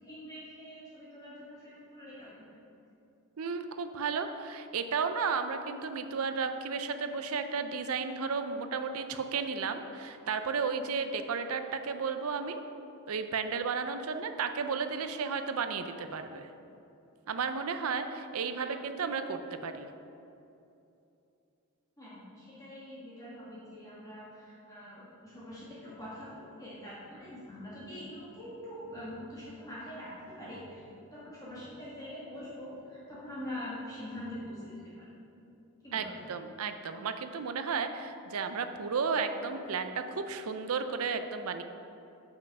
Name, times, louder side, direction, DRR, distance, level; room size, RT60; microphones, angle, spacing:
voice 1, 0.0-2.4 18.6-18.8 22.0-35.4 35.8-36.4, left 1 dB, 15° left, -9 dB, 1.6 m, -44 dB
voice 2, 3.4-12.6 13.1-16.5 17.3-19.9 35.9-41.6, right 5 dB, 70° right, 8 dB, 0.5 m, -33 dB
7.7 x 5.9 x 5.3 m, 2.8 s
head